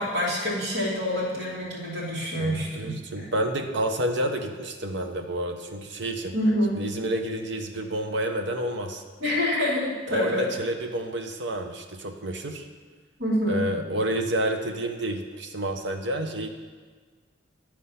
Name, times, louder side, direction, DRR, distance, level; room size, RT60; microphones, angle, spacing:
voice 1, 0.0-3.3 6.3-6.7 9.2-10.5 13.2-13.6, equal, 85° right, -5 dB, 2.7 m, -26 dB
voice 2, 2.4-6.3 6.7-9.0 10.1-12.7 13.5-16.5, right 1 dB, 65° right, 5 dB, 0.8 m, -29 dB
11.5 x 4.5 x 5.7 m, 1.5 s
head